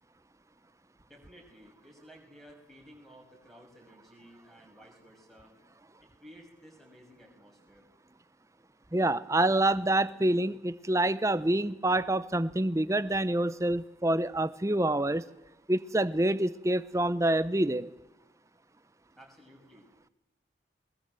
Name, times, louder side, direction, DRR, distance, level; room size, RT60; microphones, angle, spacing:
voice 1, 1.1-5.5 6.2-7.9 19.1-20.1, equal, ahead, 0 dB, 6.5 m, -55 dB
voice 2, 8.9-15.2 15.7-17.9, right 1 dB, 15° right, 15 dB, 0.7 m, -27 dB
22.5 x 21.0 x 7.8 m, 0.99 s
head